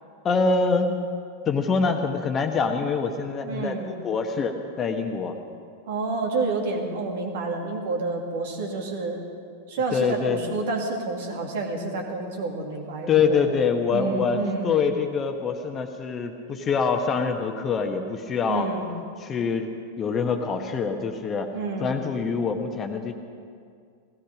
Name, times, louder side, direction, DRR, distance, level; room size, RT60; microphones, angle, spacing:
voice 1, 0.2-1.0 1.5-5.3 9.9-10.4 13.1-18.7 19.2-19.7 20.0-21.5 21.8-23.1, left 5 dB, 25° left, 5 dB, 1.3 m, -25 dB
voice 2, 3.5-3.9 5.9-9.2 9.7-13.5 13.9-14.8 18.4-18.9 21.5-22.0, right 3 dB, 55° right, 2 dB, 2.2 m, -29 dB
17.5 x 16.0 x 5.2 m, 2.2 s
figure-of-eight pair, 90°, 0 cm